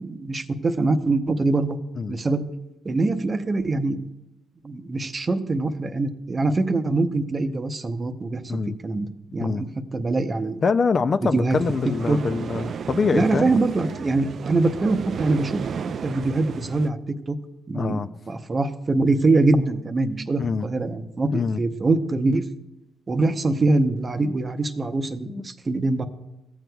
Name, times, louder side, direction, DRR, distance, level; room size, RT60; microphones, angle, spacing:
voice 1, 0.0-1.8 2.1-2.4 2.8-4.1 4.6-10.6 11.2-11.6 12.1-12.2 13.1-15.6 16.0-17.0 17.3-17.4 17.7-22.4 23.1-26.1, right 3 dB, 30° right, 8 dB, 0.7 m, -23 dB
voice 2, 10.6-13.5 17.7-18.1 20.4-20.7 21.3-21.6 25.3-25.5, left 5 dB, 40° left, 11 dB, 0.3 m, -24 dB
sound 1, 11.5-16.9, right 7 dB, 55° right, 0.3 m, -33 dB
15.0 x 7.7 x 2.3 m, 0.92 s
cardioid pair, 90°, 0 cm